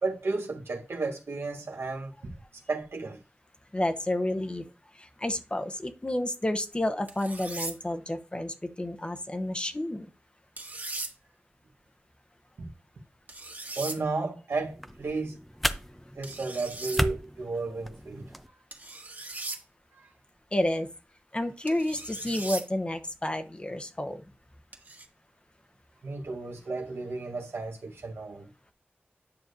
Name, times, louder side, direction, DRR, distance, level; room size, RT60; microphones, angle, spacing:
voice 1, 0.0-3.2 12.6-12.7 13.8-15.4 16.2-18.3 19.9-20.1 26.0-28.5, right 3 dB, 90° right, 1.2 m, -33 dB
voice 2, 3.7-4.6 5.2-10.0 20.5-20.9 21.3-24.2, left 1 dB, 25° left, 0.8 m, -30 dB
sound 1, 7.1-7.7 10.6-11.1 13.3-14.0 16.2-17.0 18.7-19.6 21.7-22.6 24.7-25.1, right 2 dB, 45° right, 1.5 m, -38 dB
sound 2, 14.5-18.5, equal, ahead, 0.6 m, -34 dB
9.8 x 6.4 x 2.6 m
wide cardioid pair, 65°, 4 cm